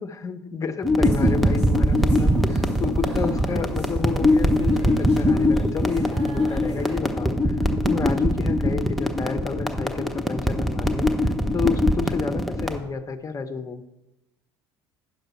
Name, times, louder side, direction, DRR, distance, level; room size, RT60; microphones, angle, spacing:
voice 1, 0.0-7.6 7.8-13.8, left 5 dB, 25° left, 10 dB, 0.7 m, -30 dB
sound 1, 0.8-12.8, left 1 dB, ahead, 0.9 m, -22 dB
sound 2, 1.0-7.0, right 2 dB, 85° right, 1.2 m, -42 dB
9.9 x 6.6 x 4.4 m, 0.96 s
figure-of-eight pair, 65°, 14 cm